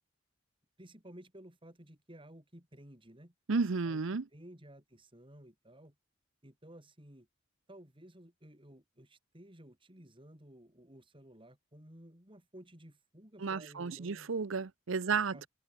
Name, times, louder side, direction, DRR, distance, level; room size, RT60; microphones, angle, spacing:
voice 1, 0.8-3.3 3.8-6.0 6.4-7.3 7.7-14.3 15.1-15.5, right 1 dB, 25° right, 4.5 m, -55 dB
voice 2, 3.5-4.2 13.4-15.5, right 4 dB, 70° right, 0.7 m, -32 dB
head